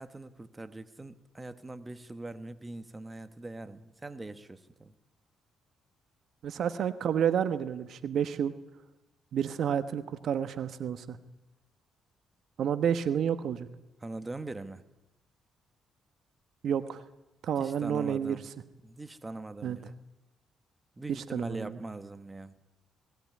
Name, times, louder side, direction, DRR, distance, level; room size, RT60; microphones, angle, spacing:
voice 1, 0.0-4.9 14.0-14.8 17.6-18.4 18.8-19.9 21.0-22.5, right 2 dB, 20° right, 11 dB, 1.3 m, -42 dB
voice 2, 6.4-8.5 9.3-11.2 12.6-13.7 16.6-17.0 17.4-18.4 19.6-19.8 21.1-21.8, right 8 dB, 65° right, 12 dB, 1.1 m, -30 dB
19.5 x 17.0 x 9.7 m, 0.98 s
cardioid pair, 90°, 0 cm